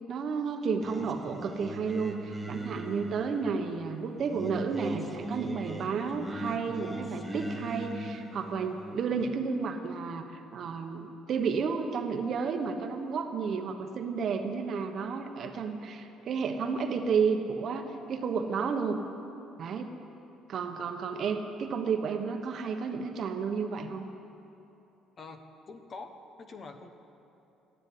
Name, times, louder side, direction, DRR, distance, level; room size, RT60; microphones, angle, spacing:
voice 1, 0.1-19.0 19.6-20.0 20.5-24.1, right 5 dB, 45° right, 5 dB, 1.2 m, -32 dB
Singing, 0.8-9.3, right 2 dB, ahead, 1.2 m, -39 dB
voice 2, 25.2-26.9, left 3 dB, 35° left, 7 dB, 1.1 m, -45 dB
14.0 x 10.0 x 9.8 m, 2.9 s
cardioid pair, 145°, 0 cm